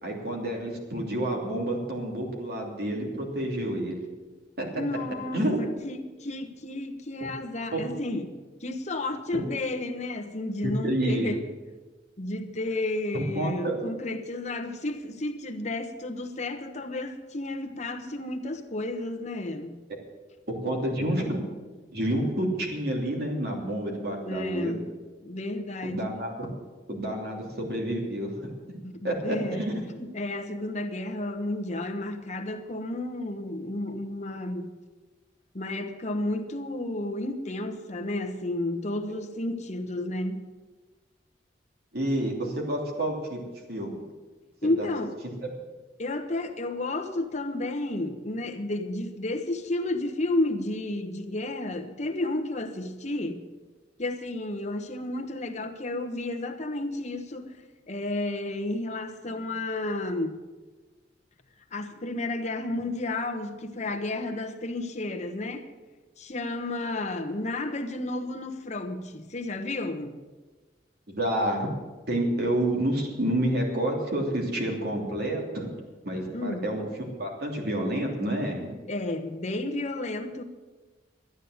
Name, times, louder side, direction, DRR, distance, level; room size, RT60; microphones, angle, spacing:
voice 1, 0.0-4.0 4.6-4.7 5.3-5.6 7.7-7.9 9.3-9.4 10.6-11.3 13.1-13.8 20.5-21.4 21.9-24.7 25.8-26.5 26.9-28.5 29.0-29.7 41.9-43.4 43.7-44.0 44.8-44.9 71.1-71.7 72.1-75.7 76.0-76.9 77.1-78.7, right 1 dB, 60° right, 3.0 m, -29 dB
voice 2, 4.7-8.4 8.6-11.4 12.2-19.8 24.2-24.9 25.2-26.1 28.8-29.7 29.9-34.7 35.5-40.4 44.6-45.2 46.0-53.5 54.0-57.6 57.9-60.4 61.7-65.7 66.2-70.2 76.3-76.7 78.9-80.4, left 2 dB, 40° left, 1.2 m, -32 dB
12.5 x 9.6 x 8.0 m
head